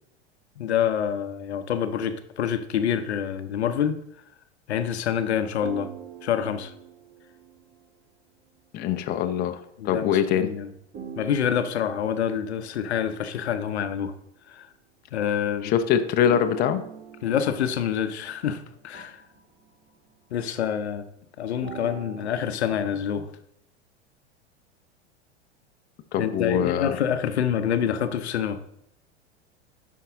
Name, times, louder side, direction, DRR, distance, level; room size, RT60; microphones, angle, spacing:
voice 1, 0.6-4.0 4.7-5.9 6.2-6.7 9.8-10.7 11.2-14.1 14.5-14.7 15.1-15.7 17.2-19.2 20.3-21.1 21.4-23.3 26.2-28.6, left 8 dB, 70° left, 10 dB, 0.8 m, -27 dB
sound 1, 5.6-8.0 10.9-13.2 16.3-19.9 21.6-22.3, right 7 dB, 25° right, 1.4 m, -43 dB
voice 2, 8.7-9.6 9.8-10.5 15.6-16.8 26.1-27.0, left 9 dB, 30° left, 7 dB, 0.6 m, -23 dB
11.0 x 4.6 x 3.6 m, 0.72 s
figure-of-eight pair, 90°, 34 cm